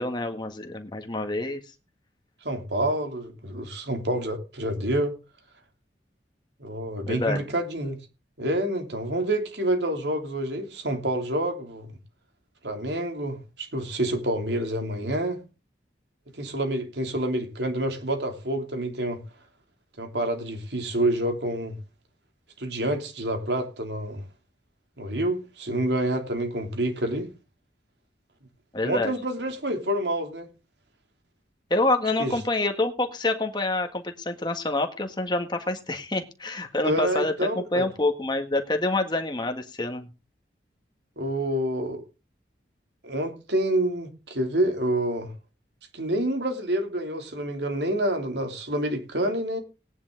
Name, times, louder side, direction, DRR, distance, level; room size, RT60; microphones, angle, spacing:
voice 1, 0.0-1.6 7.1-7.4 28.7-29.1 31.7-40.1, left 2 dB, 25° left, 1.6 m, -27 dB
voice 2, 2.4-5.1 6.6-8.0 8.4-11.9 12.6-15.4 16.4-19.2 20.0-21.8 22.6-24.2 25.0-27.3 28.8-30.5 32.2-32.3 36.8-37.9 41.2-42.0 43.0-45.3 45.9-49.6, right 1 dB, 70° right, 3.1 m, -28 dB
17.5 x 10.0 x 3.9 m
head